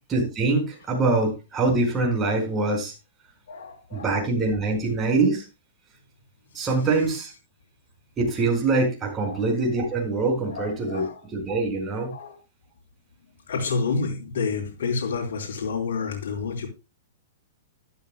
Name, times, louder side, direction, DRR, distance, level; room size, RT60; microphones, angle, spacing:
voice 1, 0.1-2.9 3.9-5.4 6.5-7.3 8.2-11.0 11.3-12.1, right 3 dB, 15° right, 4.7 m, -24 dB
voice 2, 3.5-4.1 9.2-9.5 10.5-11.2 12.1-12.4 13.5-16.7, left 4 dB, 80° left, 3.3 m, -29 dB
12.0 x 12.0 x 2.2 m
hypercardioid pair, 155°, 0 cm